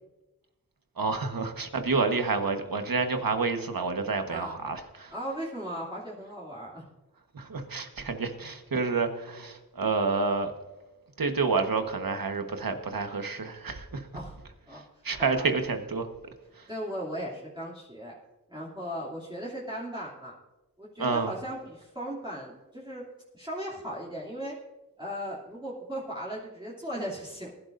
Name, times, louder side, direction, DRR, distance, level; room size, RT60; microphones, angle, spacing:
voice 1, 1.0-5.1 7.3-10.5 11.2-14.1 14.7-16.1 16.5-16.7 21.0-21.3, right 4 dB, 75° right, 1.4 m, -29 dB
voice 2, 5.1-6.8 14.1-14.3 14.7-14.8 15.4-15.5 16.7-18.1 18.5-20.3 20.8-23.1 23.3-24.5 25.0-27.5, equal, 15° right, 2.8 m, -37 dB
20.5 x 11.5 x 2.6 m
wide cardioid pair, 55°, 35 cm